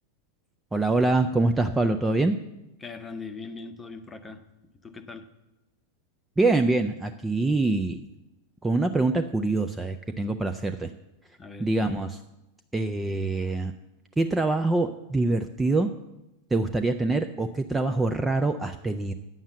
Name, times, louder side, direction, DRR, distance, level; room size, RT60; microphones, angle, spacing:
voice 1, 0.7-2.3 6.4-8.0 8.6-10.9 11.6-12.2 12.7-13.7 14.2-15.9 16.5-19.1, right 2 dB, 10° right, 7 dB, 0.5 m, -25 dB
voice 2, 2.8-4.4 4.8-5.3 11.4-11.7, left 4 dB, 15° left, 9 dB, 0.9 m, -40 dB
9.3 x 7.2 x 7.0 m, 0.94 s
figure-of-eight pair, 90°, 0 cm